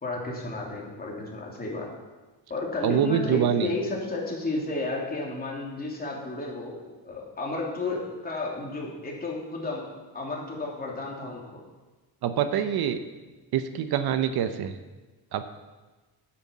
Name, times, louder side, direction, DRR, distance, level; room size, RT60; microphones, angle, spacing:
voice 1, 0.0-1.9 2.5-6.7 7.0-9.9 10.1-11.6, left 2 dB, 20° left, -2 dB, 3.1 m, -32 dB
voice 2, 2.8-3.7 12.2-13.0 13.5-14.8 15.3-15.5, right 9 dB, 65° right, 10 dB, 0.9 m, -25 dB
9.6 x 8.8 x 7.3 m, 1.2 s
cardioid pair, 145°, 40 cm